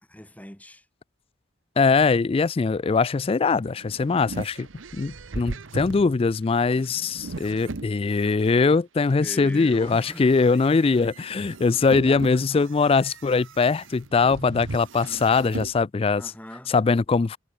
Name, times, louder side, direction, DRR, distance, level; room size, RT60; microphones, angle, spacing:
voice 1, 0.1-0.9 9.2-10.4 12.0-12.2 12.5-12.7 15.0-15.5 16.1-16.7, equal, 10° left, 4.7 m, -41 dB
voice 2, 1.8-4.7 4.9-16.2 16.7-17.4, left 4 dB, 30° left, 0.3 m, -22 dB
sound 1, 3.6-8.5 9.1-15.7, right 3 dB, 75° right, 0.9 m, -39 dB
head